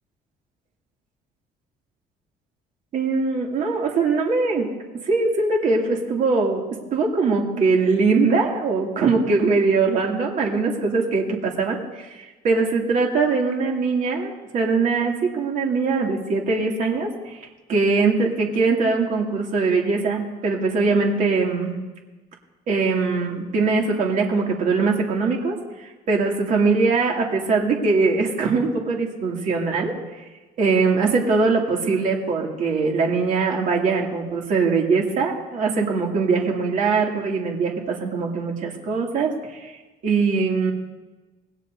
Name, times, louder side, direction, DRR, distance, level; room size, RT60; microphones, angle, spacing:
voice 1, 2.9-4.7 5.0-6.6 6.9-21.8 22.7-25.6 26.1-30.0 30.6-39.7 40.0-40.7, right 4 dB, 50° right, -1 dB, 2.6 m, -22 dB
26.5 x 20.0 x 2.7 m, 1.2 s
cardioid pair, 170°, 17 cm